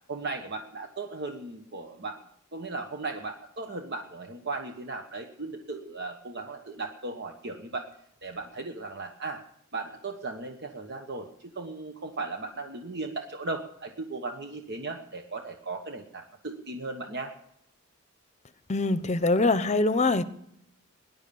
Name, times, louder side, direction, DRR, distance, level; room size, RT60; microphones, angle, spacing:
voice 1, 0.1-2.2 2.5-7.9 8.2-9.4 9.7-17.3, right 3 dB, 50° right, 1.2 m, -37 dB
voice 2, 18.7-20.2, left 2 dB, 30° left, 0.9 m, -23 dB
19.0 x 11.0 x 7.0 m
head